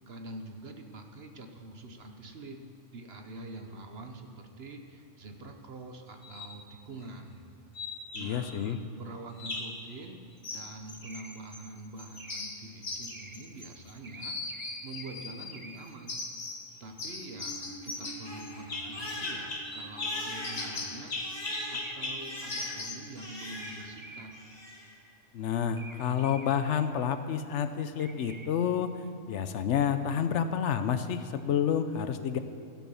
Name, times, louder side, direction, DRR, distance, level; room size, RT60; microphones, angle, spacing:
voice 1, 0.1-7.4 8.1-10.2 10.5-16.2 16.8-21.1 21.7-24.4, right 2 dB, 55° right, 5 dB, 1.1 m, -45 dB
sound 1, 6.2-6.6 7.8-8.6 9.4-9.8 10.4-11.7 12.0-13.9 14.2-15.6 16.1-16.7 17.0-23.1, left 3 dB, 40° left, 1.3 m, -38 dB
voice 2, 8.1-8.8 25.3-28.9 29.3-32.4, left 8 dB, 70° left, 9 dB, 0.9 m, -29 dB
sound 2, 11.0-11.6 12.2-12.7 13.1-13.6 14.0-16.1 17.1-17.6 18.7-19.5 20.4-21.1 21.7-22.4 23.6-24.6 25.8-26.8 28.0-28.5, right 3 dB, 30° right, 0.7 m, -50 dB
Crying sobbing, 17.2-24.0 24.3-24.9, left 1 dB, 20° left, 2.3 m, -42 dB
16.0 x 6.2 x 7.0 m, 2.6 s
omnidirectional pair, 1.3 m